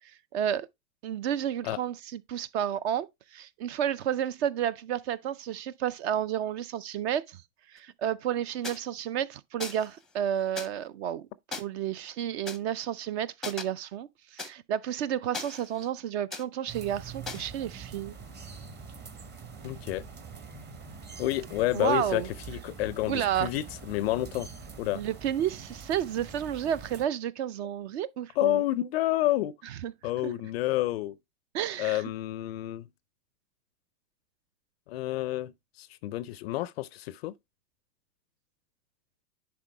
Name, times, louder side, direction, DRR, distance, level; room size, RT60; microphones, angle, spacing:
voice 1, 0.3-0.7 1.0-7.4 7.7-18.1 21.7-22.3 23.1-23.5 24.9-28.6 29.8-29.9 30.2-30.3 31.5-32.0, right 10 dB, 45° right, 0.5 m, -31 dB
sound 1, 8.6-8.8 9.6-9.9 10.6-10.7 11.5-11.6 12.5-12.6 13.4-13.6 14.4-14.5 15.3-15.9 16.3-16.4 17.3-17.5, left 3 dB, ahead, 0.6 m, -37 dB
sound 2, 16.7-27.1, right 5 dB, 20° right, 1.0 m, -44 dB
voice 2, 19.6-20.0 21.2-24.5 24.8-25.0 28.4-29.5 30.0-31.2 31.8-32.9 34.9-35.5 35.8-37.3, left 16 dB, 45° left, 0.4 m, -29 dB
10.5 x 3.8 x 3.2 m
hypercardioid pair, 110°, 47 cm